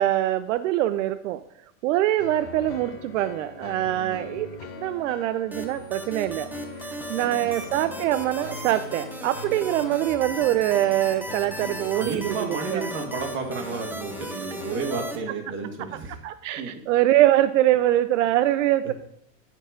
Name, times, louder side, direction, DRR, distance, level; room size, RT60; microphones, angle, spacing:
voice 1, 0.0-1.4 1.8-4.5 4.8-6.5 6.8-12.9 16.2-18.9, right 13 dB, 80° right, 11 dB, 0.6 m, -23 dB
sound 1, 2.2-14.9, left 4 dB, 35° left, 1.3 m, -41 dB
voice 2, 3.9-4.3 7.1-7.5 11.9-16.2 16.6-16.8 18.8-18.9, right 4 dB, 30° right, 2 dB, 2.3 m, -32 dB
sound 2, 5.5-15.2, right 2 dB, 5° right, 0.8 m, -37 dB
sound 3, 6.7-14.7, left 8 dB, 65° left, 1.6 m, -47 dB
12.5 x 4.6 x 5.2 m, 0.69 s
supercardioid pair, 135°, 37 cm